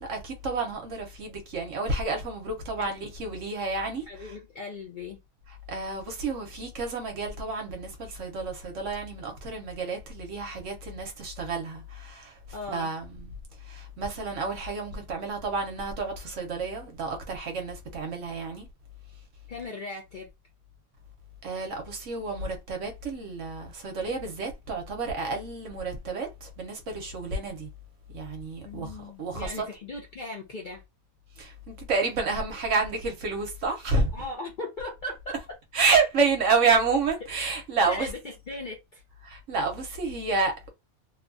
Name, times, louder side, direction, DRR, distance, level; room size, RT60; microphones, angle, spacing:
voice 1, 0.0-4.3 5.7-12.4 12.7-13.3 13.7-18.7 21.4-27.7 28.1-29.7 31.4-34.1 35.7-38.1 39.2-40.7, right 4 dB, 65° right, 1.1 m, -29 dB
voice 2, 4.1-5.2 12.5-12.9 19.5-20.3 28.6-30.8 34.1-35.4 37.9-39.0, left 2 dB, 50° left, 0.6 m, -38 dB
2.9 x 2.2 x 2.5 m
omnidirectional pair, 1.5 m